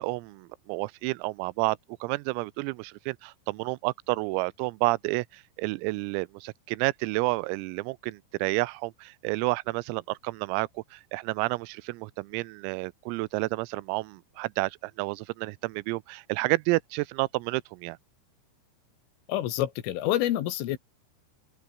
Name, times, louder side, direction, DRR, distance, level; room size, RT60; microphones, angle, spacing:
voice 1, 0.0-18.0, right 23 dB, 90° right, 3.4 m, -30 dB
voice 2, 19.3-20.8, left 13 dB, 75° left, 4.2 m, -27 dB
open air
omnidirectional pair, 6.0 m